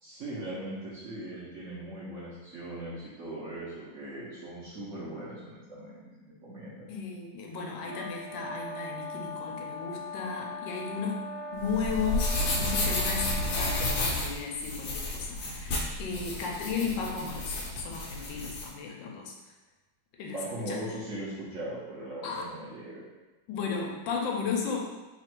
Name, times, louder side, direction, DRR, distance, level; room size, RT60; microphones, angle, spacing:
voice 1, 0.0-6.9 20.3-23.0, right 1 dB, 55° right, -8 dB, 0.9 m, -39 dB
voice 2, 6.9-11.2 11.5-19.3 20.2-20.4 20.7-20.8 22.2-22.5 23.5-24.8, left 5 dB, 80° left, 0 dB, 1.3 m, -34 dB
sound 1, 7.8-14.0, left 2 dB, 40° left, 0.6 m, -40 dB
sound 2, 11.6-18.7, left 2 dB, 60° left, 1.1 m, -31 dB
3.4 x 2.5 x 4.3 m, 1.2 s
omnidirectional pair, 2.1 m